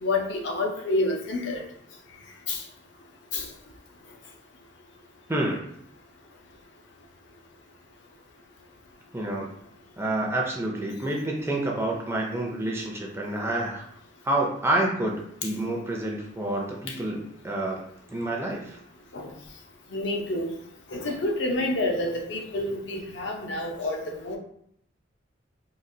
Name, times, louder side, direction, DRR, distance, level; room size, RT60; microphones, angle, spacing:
voice 1, 0.0-1.6 2.5-2.6 3.3-3.5 16.9-17.0 19.1-19.3 19.9-20.5 20.9-24.4, left 2 dB, 65° left, 1 dB, 0.6 m, -28 dB
voice 2, 5.3-5.7 9.1-9.5 10.0-13.8 14.2-17.8 18.1-18.8, right 1 dB, 15° right, -1 dB, 0.5 m, -28 dB
3.9 x 2.4 x 2.6 m, 0.70 s
head